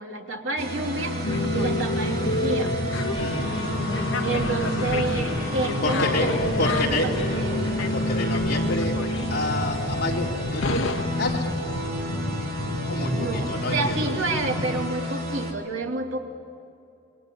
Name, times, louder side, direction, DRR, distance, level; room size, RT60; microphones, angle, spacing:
voice 1, 0.0-2.7 4.2-7.7 13.1-16.2, right 2 dB, 70° right, 1 dB, 3.1 m, -29 dB
sound 1, 0.6-15.5, equal, 50° right, 3.6 m, -32 dB
sound 2, 0.8-14.3, left 2 dB, 30° left, 6.3 m, -38 dB
sound 3, 1.2-14.8, left 2 dB, 80° left, 1.2 m, -29 dB
voice 2, 3.2-3.5 5.8-7.1 7.9-9.0 9.3-11.5 12.9-14.2, left 1 dB, 50° left, -2 dB, 4.1 m, -28 dB
27.5 x 23.5 x 8.5 m, 2.7 s
head